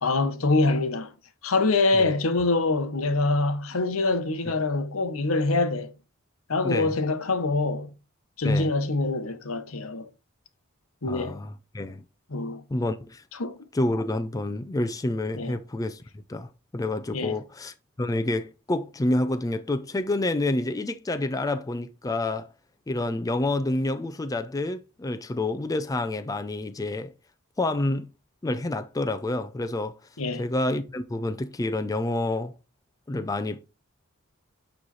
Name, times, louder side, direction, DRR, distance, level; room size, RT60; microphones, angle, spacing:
voice 1, 0.0-1.1 1.4-5.9 6.5-7.9 8.4-10.1 11.0-11.4 12.3-12.6 13.3-13.5 15.3-15.5 17.1-17.4 30.2-30.4, left 3 dB, 85° left, 1.0 m, -25 dB
voice 2, 6.6-6.9 8.4-8.7 11.1-12.0 12.7-13.2 13.7-22.5 22.9-27.1 27.6-28.1 28.4-29.9 30.4-32.5 33.1-33.6, left 2 dB, 15° left, 0.4 m, -28 dB
8.7 x 3.1 x 4.1 m
head